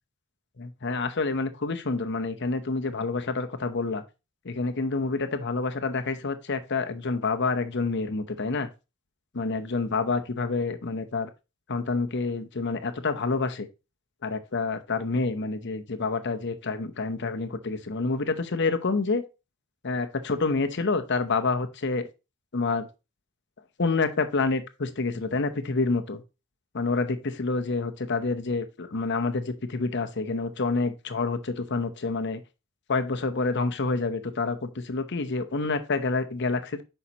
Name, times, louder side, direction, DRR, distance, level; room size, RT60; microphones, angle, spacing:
voice 1, 0.6-4.0 4.4-8.7 9.3-11.3 11.7-13.7 14.2-19.2 19.8-22.1 22.5-22.9 23.8-26.2 26.7-32.4 32.9-36.8, left 3 dB, 50° left, 0.8 m, -28 dB
8.4 x 5.7 x 2.9 m
head